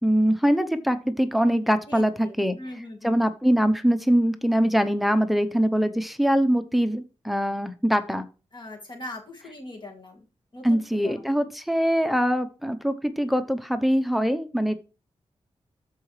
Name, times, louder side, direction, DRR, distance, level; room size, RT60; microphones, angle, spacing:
voice 1, 0.0-2.6 3.0-8.3 10.6-14.8, equal, ahead, 9 dB, 0.8 m, -23 dB
voice 2, 1.9-3.2 8.5-10.3 10.5-11.2, left 1 dB, 40° left, 2 dB, 2.1 m, -41 dB
13.0 x 4.8 x 3.3 m, 0.33 s
wide cardioid pair, 90°, 12 cm